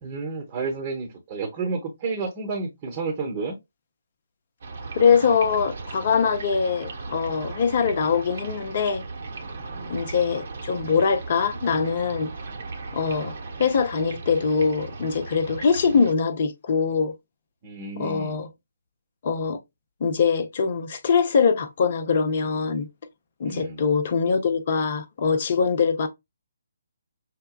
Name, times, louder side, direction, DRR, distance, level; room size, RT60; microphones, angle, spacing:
voice 1, 0.0-3.6 9.7-10.0 17.6-18.4 23.4-23.8, right 4 dB, 25° right, 1.0 m, -31 dB
sound 1, 4.6-16.1, right 3 dB, 45° right, 1.0 m, -37 dB
voice 2, 5.0-9.0 9.9-12.3 12.9-17.1 18.0-18.5 19.2-19.6 20.0-22.9 23.4-26.1, left 5 dB, 40° left, 0.6 m, -23 dB
6.5 x 2.2 x 2.3 m
figure-of-eight pair, 140°, 0 cm